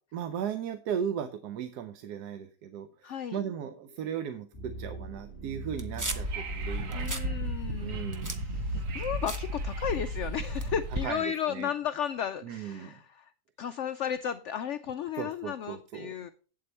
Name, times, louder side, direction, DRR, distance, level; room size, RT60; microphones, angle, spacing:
voice 1, 0.1-7.1 7.8-8.4 11.0-11.7 12.4-13.0 15.2-16.1, right 8 dB, 80° right, 10 dB, 1.2 m, -37 dB
voice 2, 3.0-3.4 6.9-8.0 8.3-13.3 13.6-16.3, left 9 dB, 75° left, 11 dB, 0.6 m, -34 dB
sound 1, 3.4-7.4, right 2 dB, 30° left, 2.5 m, -44 dB
sound 2, 5.7-6.4 6.8-7.3 7.6-10.2 10.6-11.1, right 1 dB, 30° right, 0.3 m, -38 dB
Wind / Subway metro underground, 6.0-11.1, right 1 dB, 55° right, 1.4 m, -34 dB
8.2 x 7.6 x 4.2 m, 0.38 s
omnidirectional pair, 1.7 m